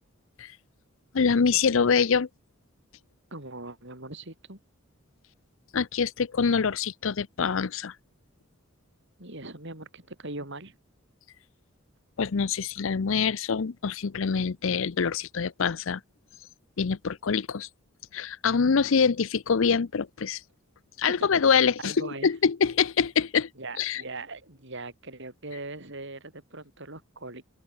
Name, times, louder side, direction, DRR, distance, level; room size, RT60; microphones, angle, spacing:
voice 1, 1.1-2.3 5.7-7.9 12.2-16.0 16.8-17.7 18.1-20.4 21.0-23.5 23.8-24.0, left 6 dB, 70° left, 0.6 m, -25 dB
voice 2, 3.3-4.6 9.2-10.8 21.1-21.3 21.8-22.3 23.6-27.5, right 2 dB, 60° right, 7.5 m, -40 dB
head